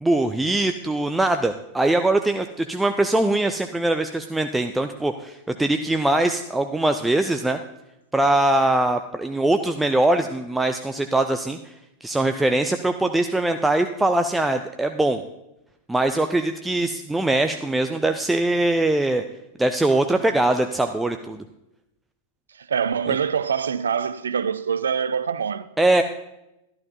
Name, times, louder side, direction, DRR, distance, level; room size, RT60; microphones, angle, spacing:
voice 1, 0.0-7.6 8.1-11.7 12.0-15.2 15.9-19.2 19.6-21.4 23.1-23.2 25.8-26.0, right 2 dB, 5° right, 0.4 m, -22 dB
voice 2, 22.6-25.7, right 7 dB, 70° right, 0.4 m, -24 dB
13.0 x 11.5 x 2.7 m
figure-of-eight pair, 90°, 0 cm